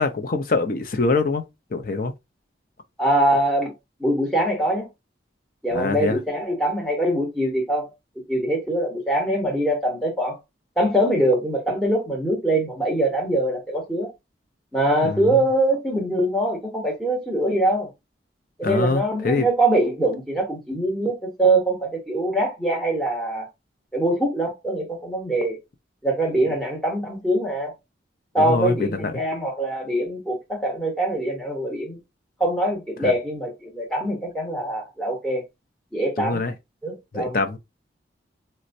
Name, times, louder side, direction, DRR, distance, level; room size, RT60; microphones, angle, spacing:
voice 1, 0.0-1.4 1.7-2.1 5.7-6.2 15.0-15.4 18.6-19.5 28.4-29.2 33.0-33.1 36.2-36.5 37.1-37.6, left 3 dB, 50° left, 0.5 m, -24 dB
voice 2, 3.0-3.7 4.0-4.9 5.6-7.9 8.3-10.4 10.8-14.1 14.7-17.9 18.6-23.5 23.9-25.6 26.0-27.7 28.3-32.0 32.4-35.4 35.9-36.4 36.8-37.4, right 1 dB, 5° left, 0.8 m, -23 dB
4.2 x 2.1 x 2.5 m
head